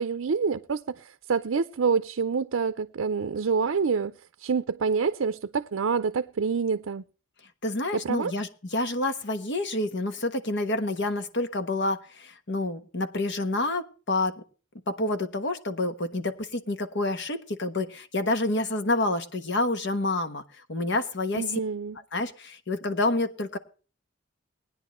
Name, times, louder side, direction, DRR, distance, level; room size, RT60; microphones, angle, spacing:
voice 1, 0.0-7.0 7.9-8.3 21.3-22.0, right 5 dB, 75° right, 0.5 m, -27 dB
voice 2, 7.6-14.4 14.9-20.4 20.7-21.6 22.1-23.6, left 2 dB, 60° left, 1.3 m, -28 dB
19.5 x 10.0 x 3.2 m
head